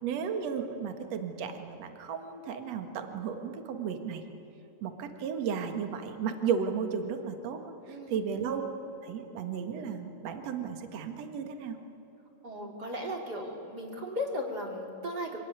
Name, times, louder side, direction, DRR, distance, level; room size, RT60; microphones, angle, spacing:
voice 1, 0.0-4.2 4.8-7.6 7.9-8.6 9.0-11.8, right 6 dB, 50° right, 6 dB, 2.5 m, -34 dB
voice 2, 7.9-8.3 12.4-15.4, left 1 dB, 30° right, 1 dB, 2.8 m, -36 dB
25.5 x 18.5 x 9.6 m, 3.0 s
omnidirectional pair, 4.2 m